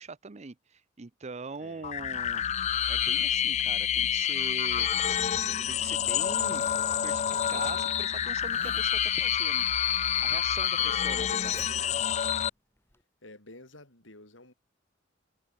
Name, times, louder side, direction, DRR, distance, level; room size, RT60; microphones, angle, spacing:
voice 1, 0.0-2.4 2.9-4.9 5.5-6.7 7.0-9.7 10.2-11.8, right 4 dB, 35° right, 0.7 m, -42 dB
voice 2, 1.6-2.1 10.8-11.1 13.2-14.5, left 2 dB, 75° left, 6.7 m, -49 dB
sound 1, 1.8-12.5, left 9 dB, 35° left, 0.4 m, -28 dB
Zipper (clothing), 5.6-13.0, left 1 dB, 10° left, 2.6 m, -55 dB
head